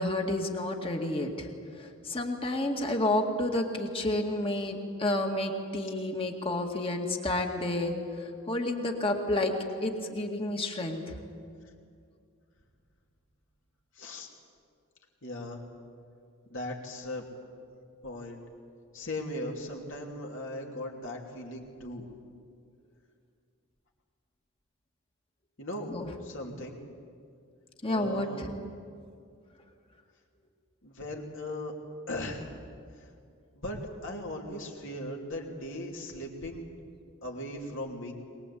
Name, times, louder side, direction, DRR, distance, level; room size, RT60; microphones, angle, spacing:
voice 1, 0.0-1.5 1.8-9.5 9.8-11.1 25.9-26.1 27.8-28.5, left 1 dB, 25° left, 2 dB, 2.1 m, -30 dB
voice 2, 14.0-14.3 15.2-15.6 16.5-17.3 18.0-18.4 18.9-22.1 25.6-26.0 26.2-26.8 27.8-28.5 30.8-31.7 32.1-32.4 33.6-36.7 37.2-38.1, left 1 dB, 60° left, 0 dB, 3.0 m, -38 dB
23.0 x 21.0 x 8.5 m, 2.3 s
head